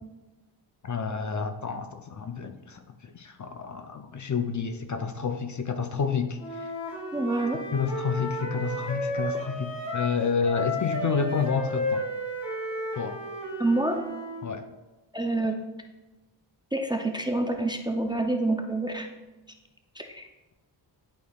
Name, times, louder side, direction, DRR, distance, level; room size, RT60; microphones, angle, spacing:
voice 1, 0.8-6.7 7.7-12.1 13.0-13.2 14.4-14.7, left 5 dB, 40° left, 7 dB, 0.6 m, -29 dB
Wind instrument woodwind instrument, 6.4-10.2 10.4-14.5, left 1 dB, 65° left, 1.9 m, -33 dB
voice 2, 7.1-7.6 13.6-14.0 15.1-15.6 16.7-19.1 20.0-20.3, right 2 dB, 10° right, 3 dB, 0.5 m, -27 dB
11.5 x 4.2 x 2.3 m, 1.1 s
wide cardioid pair, 85°, 44 cm